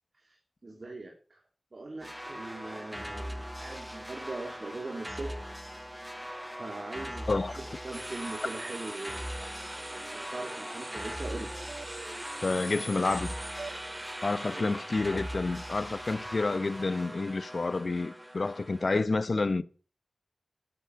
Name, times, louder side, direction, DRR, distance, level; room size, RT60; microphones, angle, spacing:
voice 1, 0.1-1.4 1.7-5.4 6.6-9.3 9.9-11.6 14.4-14.8, right 2 dB, 50° right, 3.2 m, -41 dB
sound 1, 2.0-18.9, equal, ahead, 0.6 m, -41 dB
sound 2, 7.9-18.9, right 1 dB, 20° right, 2.4 m, -44 dB
sound 3, 8.4-14.4, right 4 dB, 70° right, 1.3 m, -50 dB
voice 2, 12.4-13.3 14.2-19.6, left 3 dB, 55° left, 0.9 m, -29 dB
13.0 x 8.3 x 5.9 m
cardioid pair, 50°, 0 cm